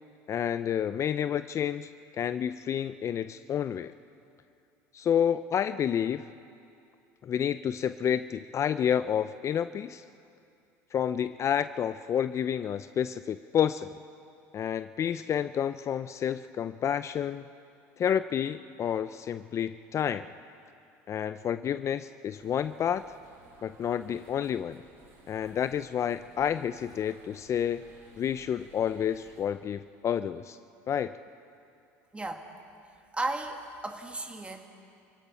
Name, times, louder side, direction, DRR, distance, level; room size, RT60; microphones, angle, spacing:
voice 1, 0.3-3.9 4.9-6.3 7.2-10.0 10.9-13.9 14.5-17.4 18.0-20.3 21.1-23.0 23.6-24.8 25.3-27.9 28.2-30.6 30.9-31.1, left 9 dB, 40° left, 12 dB, 0.5 m, -29 dB
sound 1, 22.3-29.4, right 3 dB, 85° right, 6.5 m, -57 dB
voice 2, 32.1-32.5 33.1-34.7, right 2 dB, 15° right, 4 dB, 2.3 m, -34 dB
29.5 x 16.5 x 5.7 m, 2.5 s
supercardioid pair, 90°, 8 cm